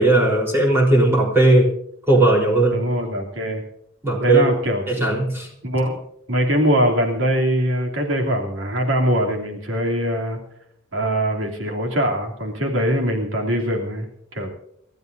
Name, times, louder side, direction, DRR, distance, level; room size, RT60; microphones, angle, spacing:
voice 1, 0.0-1.7 2.1-2.8 4.0-4.5 4.9-5.5, right 2 dB, 10° right, -2 dB, 4.0 m, -17 dB
voice 2, 2.7-3.6 4.2-5.1 5.6-6.0 6.3-10.4 10.9-14.5, equal, 75° right, 1 dB, 3.0 m, -22 dB
29.0 x 14.0 x 2.7 m, 0.72 s
head